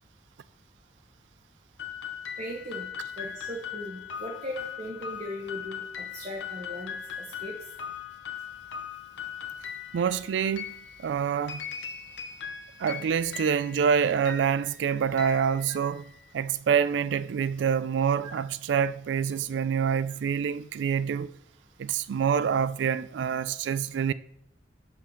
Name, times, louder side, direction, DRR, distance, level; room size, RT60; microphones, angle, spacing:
sound 1, 1.8-16.2, left 8 dB, 80° left, 0.8 m, -40 dB
voice 1, 2.4-2.9 3.2-7.5 15.7-15.8 18.2-18.3, equal, 40° right, 1.0 m, -38 dB
voice 2, 9.9-11.6 12.8-16.1 16.3-21.3 21.8-24.1, right 7 dB, 75° right, 0.3 m, -26 dB
5.7 x 5.0 x 6.2 m
head